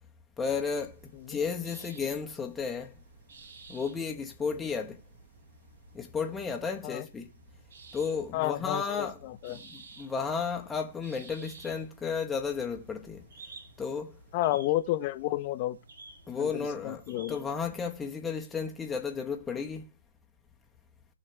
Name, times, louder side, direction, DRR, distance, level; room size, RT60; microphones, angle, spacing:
voice 1, 0.4-2.9 3.7-5.0 5.9-7.3 7.9-9.2 9.5-13.3 13.8-14.2 16.3-19.8, left 5 dB, 10° left, 1.2 m, -33 dB
sound 1, 0.6-18.1, right 3 dB, 65° right, 3.7 m, -54 dB
voice 2, 8.3-9.6 14.3-15.8 16.4-17.4, left 15 dB, 35° left, 0.9 m, -31 dB
17.5 x 6.4 x 3.3 m
hypercardioid pair, 135°, 0 cm